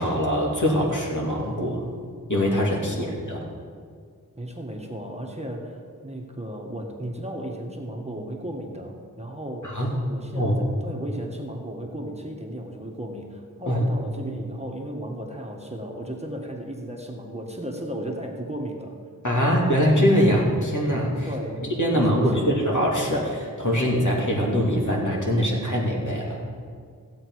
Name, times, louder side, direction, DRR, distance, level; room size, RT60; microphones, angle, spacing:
voice 1, 0.0-1.9 2.3-3.5 9.6-10.0 10.4-10.6 13.6-13.8 19.2-21.3 21.6-26.4, equal, 60° left, -2 dB, 2.5 m, -23 dB
voice 2, 4.4-5.8 6.0-9.8 10.1-18.9 21.3-21.6 21.9-22.5, right 1 dB, 20° right, 1 dB, 1.5 m, -35 dB
15.5 x 8.1 x 4.7 m, 2.1 s
wide cardioid pair, 40°, 35 cm